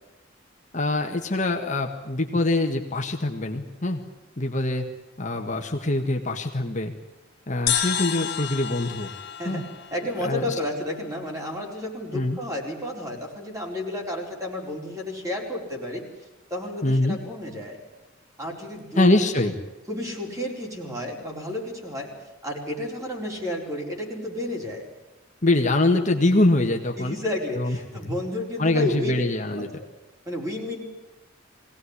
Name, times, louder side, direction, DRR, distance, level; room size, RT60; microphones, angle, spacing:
voice 1, 0.7-4.0 4.4-4.8 5.2-6.9 7.5-9.1 9.4-9.6 10.2-10.5 12.1-12.4 16.8-17.2 19.0-19.5 25.4-27.2 27.5-27.8 28.0-28.2 28.6-29.7, left 2 dB, 40° left, 3 dB, 1.6 m, -23 dB
sound 1, 7.7-11.2, left 9 dB, 55° left, 2.3 m, -30 dB
voice 2, 9.9-16.0 16.5-17.8 18.4-19.1 19.4-19.5 19.9-22.1 22.4-24.8 27.0-29.1 29.6-29.7 30.3-30.8, left 1 dB, 15° right, 0 dB, 4.7 m, -31 dB
22.0 x 17.5 x 9.9 m, 1.0 s
head